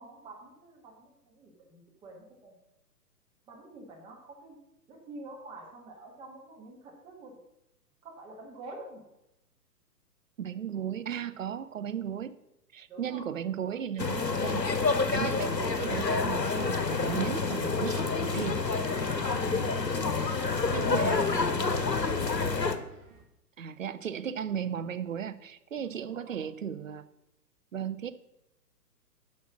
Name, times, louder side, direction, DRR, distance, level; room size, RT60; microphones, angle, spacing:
voice 1, 0.0-2.5 3.5-4.6 4.9-7.4 8.0-9.1 12.9-13.3 13.6-13.7 19.6-20.9 21.3-22.6 25.9-26.5, right 2 dB, 10° right, -2 dB, 1.4 m, -48 dB
voice 2, 10.4-12.3 12.7-18.6 19.3-19.5 20.7-21.9 23.6-27.0 27.7-28.1, right 8 dB, 55° right, 11 dB, 0.7 m, -36 dB
sound 1, 14.0-22.8, left 4 dB, 80° left, 1.0 m, -28 dB
Bird, 15.2-23.2, right 4 dB, 30° right, 1.6 m, -52 dB
8.6 x 5.5 x 6.0 m, 0.86 s
figure-of-eight pair, 125°, 49 cm